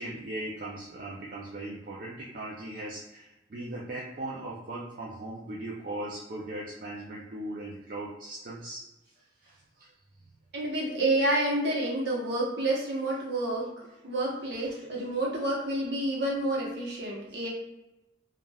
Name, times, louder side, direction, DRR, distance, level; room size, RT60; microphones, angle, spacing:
voice 1, 0.0-8.9 9.2-9.9 14.7-14.8, right 1 dB, 50° right, -4 dB, 0.4 m, -39 dB
voice 2, 10.5-13.7 14.0-17.5, right 1 dB, 65° right, -4 dB, 0.9 m, -29 dB
3.3 x 2.4 x 2.2 m, 0.98 s
head